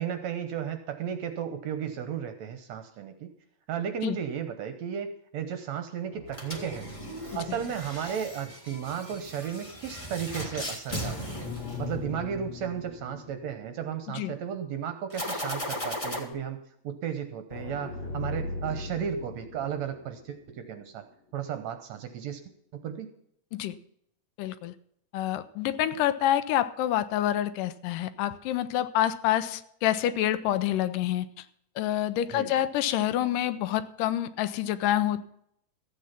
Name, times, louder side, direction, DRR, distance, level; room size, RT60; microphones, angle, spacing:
voice 1, 0.0-3.3 3.7-5.1 5.3-6.9 7.3-11.5 11.8-16.6 16.8-21.0 21.3-22.4 22.7-23.1 32.3-32.6, right 8 dB, 70° right, 8 dB, 1.8 m, -34 dB
sound 1, 6.1-8.2 8.4-8.5 11.1-14.5 14.9-15.0 17.5-20.8, left 3 dB, 65° left, 2.3 m, -40 dB
sound 2, 6.3-12.4 15.1-16.2, left 1 dB, 20° left, 0.8 m, -37 dB
voice 2, 24.4-24.7 25.1-31.4 31.8-35.2, left 12 dB, 80° left, 14 dB, 2.2 m, -27 dB
14.0 x 8.6 x 5.8 m, 0.72 s
omnidirectional pair, 3.9 m